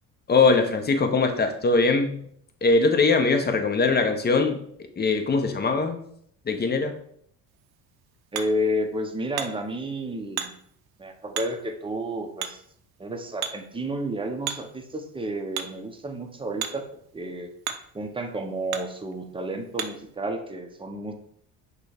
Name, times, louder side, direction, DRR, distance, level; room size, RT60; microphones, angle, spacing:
voice 1, 0.3-2.2 2.6-4.6 5.0-6.0 6.5-7.0, left 4 dB, 25° left, 6 dB, 0.7 m, -21 dB
Hammer, 7.5-20.1, right 8 dB, 70° right, 0.6 m, -39 dB
voice 2, 8.3-10.5 11.0-12.6 13.0-16.9 17.1-17.5 17.9-21.1, right 1 dB, 15° right, 4 dB, 0.7 m, -31 dB
6.0 x 2.3 x 3.4 m, 0.66 s
supercardioid pair, 80°, 39 cm